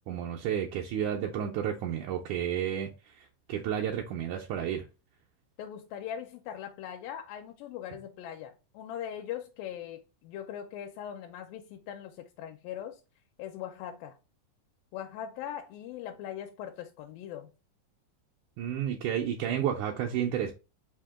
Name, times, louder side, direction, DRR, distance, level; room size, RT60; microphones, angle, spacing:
voice 1, 0.1-4.9 18.6-20.5, right 9 dB, 85° right, 1.7 m, -31 dB
voice 2, 5.6-13.0 13.4-14.2 14.9-17.5, left 10 dB, 85° left, 2.3 m, -40 dB
5.2 x 2.8 x 3.4 m
omnidirectional pair, 4.1 m